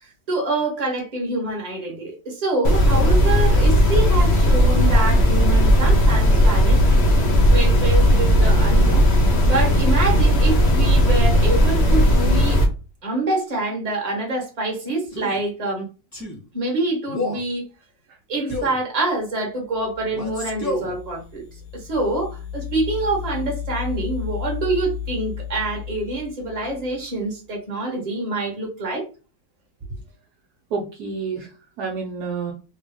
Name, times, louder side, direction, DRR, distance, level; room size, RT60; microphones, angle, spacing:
voice 1, 0.0-6.8 7.5-9.1 9.4-12.6 13.0-15.9 16.5-17.7 18.3-21.4 21.7-29.1, right 2 dB, 25° right, 1.2 m, -26 dB
sound 1, 2.6-12.7, equal, 50° left, 0.8 m, -16 dB
Male speech man speaking, 15.1-15.4 16.1-16.4 17.1-17.5 18.5-18.8 20.1-20.9, left 2 dB, 15° left, 0.8 m, -30 dB
sound 2, 19.7-27.3, left 9 dB, 80° left, 1.2 m, -33 dB
voice 2, 30.7-32.5, right 4 dB, 70° right, 1.2 m, -29 dB
3.4 x 2.3 x 3.5 m
omnidirectional pair, 1.9 m